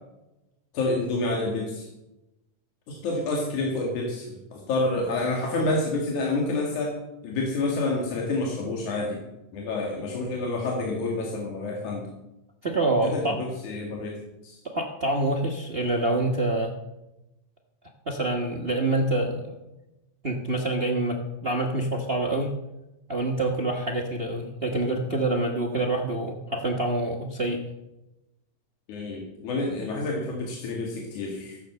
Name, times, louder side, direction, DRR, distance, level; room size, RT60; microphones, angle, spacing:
voice 1, 0.7-1.9 2.9-6.9 7.2-9.2 9.5-12.1 13.0-14.6 28.9-31.6, left 2 dB, 80° left, -1 dB, 3.4 m, -28 dB
voice 2, 12.6-13.4 14.6-16.7 18.1-19.6 20.2-22.5 23.1-27.6, right 2 dB, 75° right, 2 dB, 0.5 m, -26 dB
16.0 x 7.9 x 6.7 m, 0.95 s
omnidirectional pair, 3.4 m